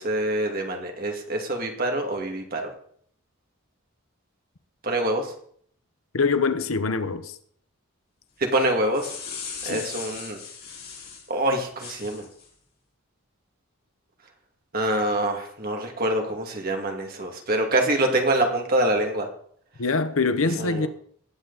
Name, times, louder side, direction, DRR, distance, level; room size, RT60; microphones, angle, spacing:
voice 1, 0.0-2.7 4.8-5.3 8.4-9.1 9.6-10.4 11.3-12.3 14.7-19.3 20.6-20.9, right 1 dB, 45° right, 2.2 m, -25 dB
voice 2, 6.1-7.4 9.6-9.9 19.8-20.9, left 4 dB, 80° left, 1.0 m, -24 dB
sound 1, 8.7-11.3 11.8-12.5, left 6 dB, 50° left, 6.4 m, -38 dB
19.0 x 8.1 x 4.1 m
head